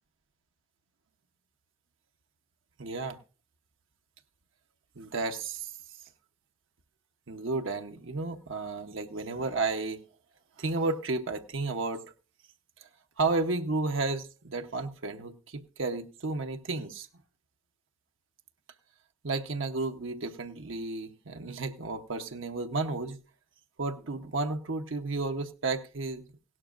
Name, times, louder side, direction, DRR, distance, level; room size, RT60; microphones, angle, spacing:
voice 1, 2.8-3.2 5.0-5.7 7.3-10.0 10.6-12.1 13.2-17.1 19.2-23.2 23.8-26.2, right 3 dB, 80° right, 5 dB, 0.9 m, -32 dB
17.0 x 12.0 x 2.5 m, 0.35 s
head